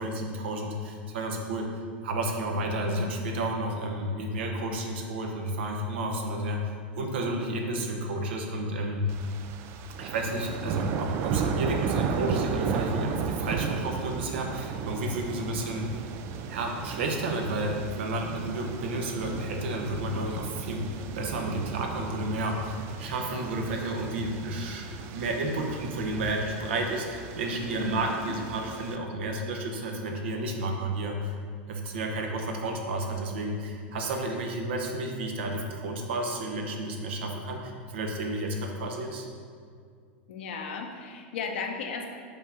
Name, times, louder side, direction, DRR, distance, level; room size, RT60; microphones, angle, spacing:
voice 1, 0.0-1.7 2.0-6.6 7.0-9.1 10.0-16.0 16.5-31.3 31.7-39.3, right 1 dB, 75° right, 2 dB, 0.9 m, -31 dB
voice 2, 2.5-3.1 27.8-28.3 40.3-42.1, left 5 dB, 75° left, 2 dB, 0.8 m, -36 dB
sound 1, 9.1-29.0, right 6 dB, 45° right, 0.4 m, -34 dB
5.4 x 3.6 x 5.7 m, 2.1 s
hypercardioid pair, 105°, 6 cm